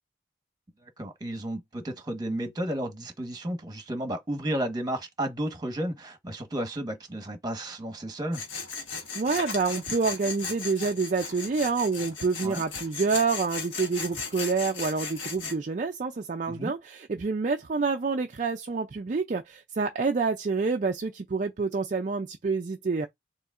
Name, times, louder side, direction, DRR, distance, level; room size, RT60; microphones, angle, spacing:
voice 1, 0.8-8.4 12.4-12.6 16.5-16.7, right 1 dB, 20° right, 1.2 m, -33 dB
Tools, 8.3-15.6, left 4 dB, 85° left, 1.4 m, -36 dB
voice 2, 9.1-23.1, right 4 dB, 40° right, 0.4 m, -28 dB
6.9 x 3.0 x 2.5 m
head